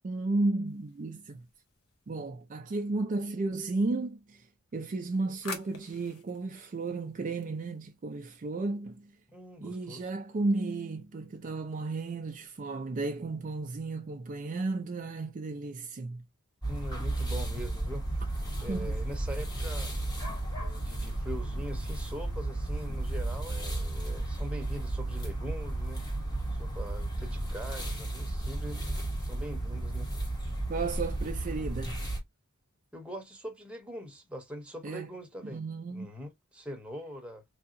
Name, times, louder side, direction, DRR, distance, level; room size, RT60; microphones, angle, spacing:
voice 1, 0.0-1.5 2.1-4.5 4.7-9.1 9.6-16.2 18.6-19.0 30.7-32.0 34.8-35.1 35.4-36.1, right 3 dB, 35° right, 0.4 m, -33 dB
sound 1, 0.7-2.4 4.7-8.0, left 4 dB, 90° left, 1.0 m, -48 dB
voice 2, 9.3-10.1 16.7-19.9 20.6-26.0 26.5-30.1 32.9-35.6 35.9-37.4, equal, 5° right, 0.9 m, -42 dB
sound 2, 16.6-32.2, right 1 dB, 20° left, 1.0 m, -33 dB
3.5 x 2.7 x 2.5 m
head